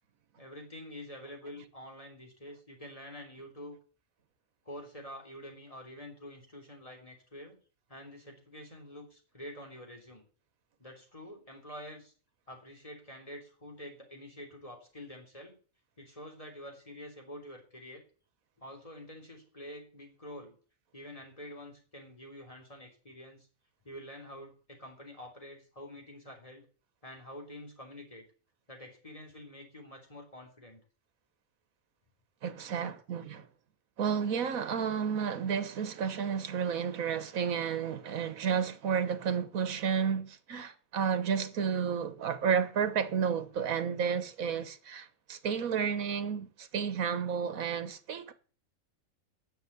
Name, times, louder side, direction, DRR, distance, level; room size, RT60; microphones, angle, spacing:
voice 1, 0.4-3.8 4.7-7.6 7.9-10.2 10.8-12.1 12.5-15.6 16.0-18.0 18.6-20.6 20.9-23.5 23.8-26.7 27.0-28.3 28.7-30.8 32.7-32.9, left 1 dB, 25° left, 3.7 m, -47 dB
voice 2, 32.4-33.5 34.0-48.3, right 7 dB, 75° right, 1.6 m, -31 dB
10.0 x 6.9 x 8.3 m
omnidirectional pair, 1.5 m